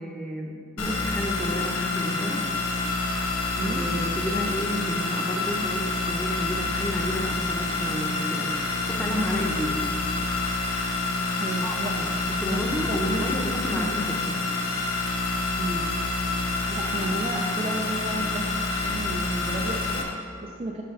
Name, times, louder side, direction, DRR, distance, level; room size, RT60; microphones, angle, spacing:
voice 1, 0.0-2.4 3.7-8.5 8.8-9.8 11.6-12.0 12.4-14.4, left 1 dB, 5° left, -1 dB, 0.8 m, -31 dB
sound 1, 0.8-20.0, left 3 dB, 85° left, 1.0 m, -27 dB
voice 2, 3.5-3.8 11.4-12.1 12.4-12.6 12.9-13.3 13.7-13.8 15.6-15.9 16.4-20.8, right 2 dB, 30° right, 0 dB, 0.4 m, -33 dB
7.1 x 5.7 x 4.6 m, 2.3 s
head